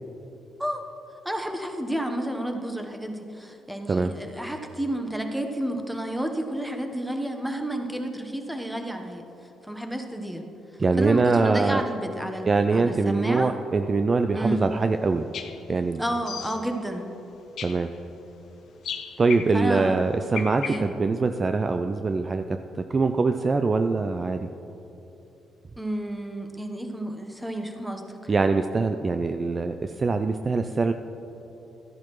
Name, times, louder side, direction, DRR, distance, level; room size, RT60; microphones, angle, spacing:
voice 1, 1.2-9.3 9.6-10.4 11.0-13.5 14.3-14.6 16.0-17.1 19.5-20.0 20.6-20.9 25.8-28.2, right 1 dB, 5° right, 4 dB, 1.0 m, -31 dB
voice 2, 10.8-11.8 12.5-15.3 15.7-16.0 17.6-17.9 19.2-24.5 28.3-30.9, right 3 dB, 35° right, 8 dB, 0.4 m, -23 dB
sound 1, 15.0-15.1 15.3-15.7 16.1-16.8 17.6-18.0 18.8-19.7 20.3-20.8, left 7 dB, 65° left, 0.6 m, -35 dB
13.5 x 10.5 x 3.1 m, 3.0 s
cardioid pair, 90°, 0 cm